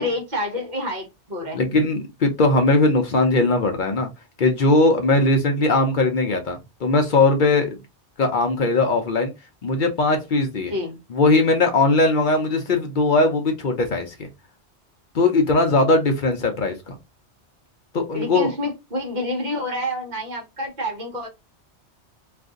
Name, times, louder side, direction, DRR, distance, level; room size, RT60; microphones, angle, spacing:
voice 1, 0.0-1.6 10.7-11.0 18.1-21.3, left 1 dB, 40° right, 1.1 m, -28 dB
voice 2, 1.5-4.1 4.4-7.8 8.2-9.3 9.6-10.7 11.1-14.3 15.1-17.0 17.9-18.5, left 2 dB, 50° left, 0.7 m, -19 dB
2.6 x 2.5 x 3.6 m
omnidirectional pair, 1.2 m